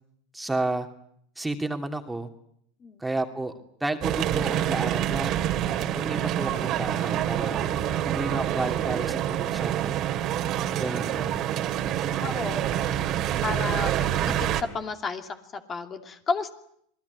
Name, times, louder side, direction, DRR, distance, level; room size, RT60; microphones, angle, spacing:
voice 1, 0.3-0.9 1.4-2.3 3.0-3.5 3.8-5.3 5.9-7.6 8.0-10.0 10.8-11.4, right 2 dB, 5° right, 5 dB, 2.8 m, -31 dB
sound 1, 4.0-14.6, right 11 dB, 50° right, 2.4 m, -27 dB
voice 2, 12.1-12.8 13.4-16.5, left 4 dB, 30° left, 6 dB, 2.7 m, -32 dB
27.0 x 19.0 x 9.6 m, 0.70 s
hypercardioid pair, 100°, 0 cm